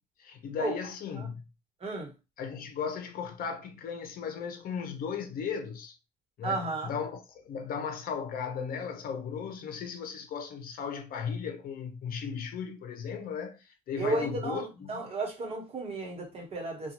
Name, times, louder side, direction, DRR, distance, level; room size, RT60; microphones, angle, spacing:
voice 1, 0.2-1.4 2.4-5.9 6.4-15.0, left 6 dB, 60° left, 0.7 m, -36 dB
voice 2, 1.8-2.1 6.4-6.9 14.0-16.9, right 3 dB, 35° right, 1.1 m, -33 dB
2.6 x 2.3 x 2.9 m
cardioid pair, 110°, 17 cm